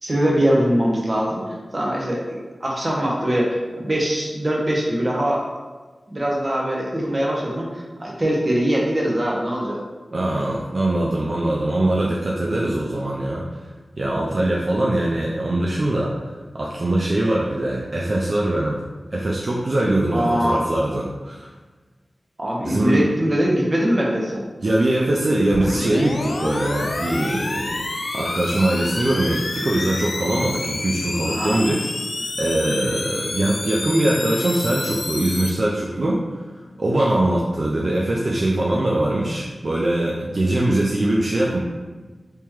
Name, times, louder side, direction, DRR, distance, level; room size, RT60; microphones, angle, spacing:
voice 1, 0.0-1.4 1.7-5.5 6.1-9.8 20.1-20.6 22.4-24.4 31.2-31.7, equal, 35° right, -2 dB, 0.8 m, -22 dB
voice 2, 10.1-13.4 14.0-16.1 16.5-18.8 19.1-21.5 22.6-23.0 24.6-27.8 28.1-31.9 32.4-36.2 36.8-41.6, right 1 dB, 60° right, -3 dB, 0.4 m, -22 dB
sound 1, 25.5-35.5, left 2 dB, 70° left, 0.3 m, -29 dB
3.5 x 2.9 x 3.1 m, 1.3 s
wide cardioid pair, 65°, 0 cm